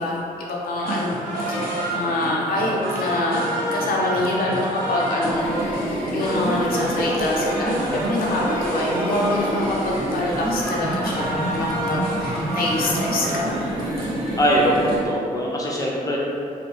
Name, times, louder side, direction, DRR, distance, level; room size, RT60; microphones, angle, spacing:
voice 1, 0.0-5.5 6.1-13.5, left 1 dB, 85° left, -3 dB, 0.5 m, -25 dB
sound 1, 0.8-15.0, right 1 dB, 75° right, 0.7 m, -28 dB
sound 2, 5.3-15.1, right 1 dB, 45° right, 0.8 m, -29 dB
voice 2, 14.4-16.2, equal, 25° left, -4 dB, 0.4 m, -21 dB
2.5 x 2.2 x 2.9 m, 2.5 s
cardioid pair, 100°, 15 cm